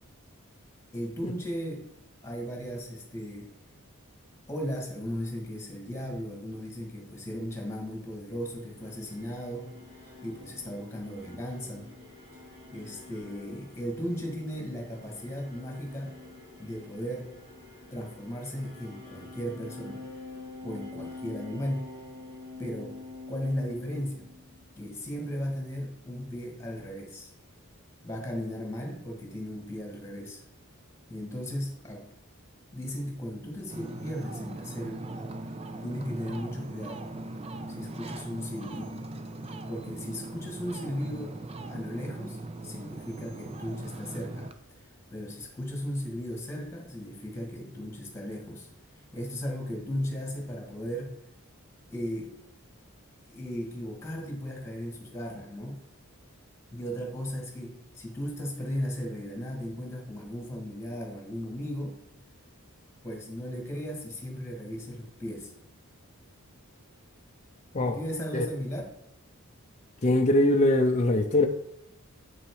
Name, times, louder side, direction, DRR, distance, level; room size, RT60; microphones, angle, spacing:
voice 1, 0.9-1.9 2.2-3.5 4.5-9.7 10.0-11.9 12.7-16.1 16.6-17.3 17.9-20.1 20.6-21.9 22.6-23.0 23.3-24.3 24.8-27.3 28.0-30.4 31.1-32.0 32.7-35.4 35.8-37.2 37.7-39.0 39.7-41.4 41.7-44.5 45.1-48.7 49.1-51.2 51.9-52.3 53.3-55.8 56.7-62.0 63.0-65.5 67.8-68.8, equal, 10° left, 0 dB, 1.9 m, -36 dB
sound 1, 8.4-24.7, left 3 dB, 50° right, 3.0 m, -47 dB
Ocean, 33.7-44.5, right 2 dB, 25° right, 0.5 m, -40 dB
voice 2, 70.0-71.5, left 1 dB, 30° left, 4 dB, 0.5 m, -22 dB
7.7 x 6.0 x 4.7 m, 0.77 s
head